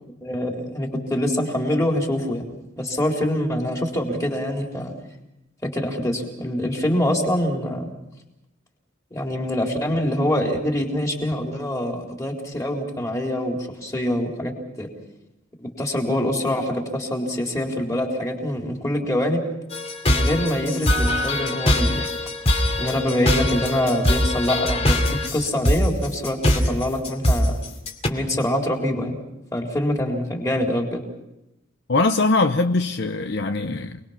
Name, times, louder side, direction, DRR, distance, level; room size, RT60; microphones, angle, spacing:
voice 1, 0.2-2.4 2.8-4.9 5.6-7.9 9.1-14.5 14.8-14.9 15.6-19.4 20.0-22.1 22.8-27.5 28.1-29.2 29.5-31.0, left 1 dB, 15° left, 3.9 m, -25 dB
sound 1, 19.7-28.1, left 1 dB, 30° left, 2.7 m, -22 dB
voice 2, 31.9-34.0, left 3 dB, 60° left, 0.8 m, -21 dB
28.5 x 21.0 x 5.8 m
head